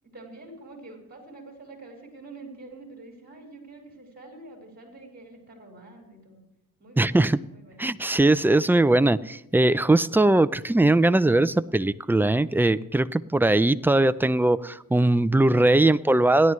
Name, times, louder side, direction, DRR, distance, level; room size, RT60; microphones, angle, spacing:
voice 1, 0.0-6.4 6.8-7.2 7.5-7.9, right 2 dB, 25° right, 1 dB, 4.9 m, -46 dB
voice 2, 7.0-7.4 7.8-16.5, right 2 dB, 5° right, 13 dB, 0.4 m, -20 dB
30.0 x 11.0 x 3.2 m, 0.84 s
cardioid pair, 85°, 36 cm